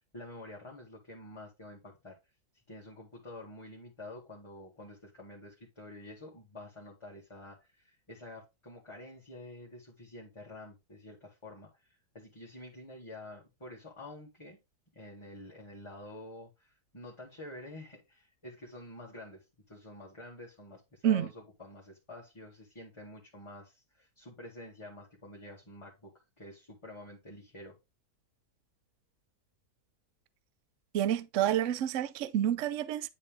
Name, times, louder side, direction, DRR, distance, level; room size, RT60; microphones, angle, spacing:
voice 1, 0.1-2.2 2.7-14.6 14.9-27.8, left 1 dB, 20° left, 2.1 m, -48 dB
voice 2, 30.9-33.1, right 11 dB, 60° right, 0.9 m, -29 dB
10.5 x 4.2 x 3.5 m
omnidirectional pair, 1.6 m